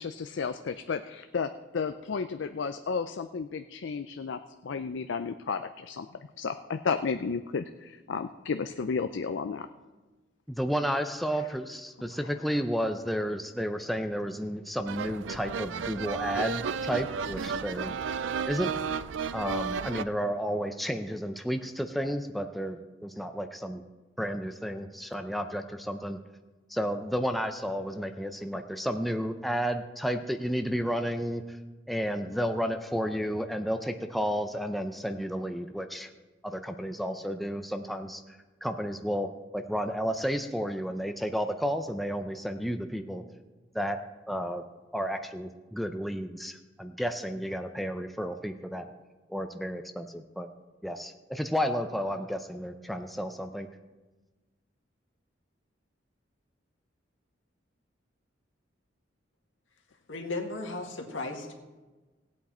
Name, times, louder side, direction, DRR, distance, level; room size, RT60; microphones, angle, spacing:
voice 1, 0.0-9.7 12.1-12.3, left 5 dB, 70° left, 8 dB, 0.4 m, -33 dB
voice 2, 10.5-17.9 18.5-18.9 19.3-23.8 24.2-26.2 26.7-31.6 31.9-36.1 36.4-38.2 38.6-43.2 43.7-44.0 44.3-44.6 44.9-48.9 49.3-50.5 50.8-53.7, equal, ahead, 6 dB, 0.5 m, -32 dB
sound 1, 14.9-20.0, right 6 dB, 75° right, 0.4 m, -33 dB
voice 3, 60.1-61.5, left 2 dB, 85° left, 2 dB, 1.9 m, -35 dB
17.0 x 8.4 x 4.3 m, 1.2 s
head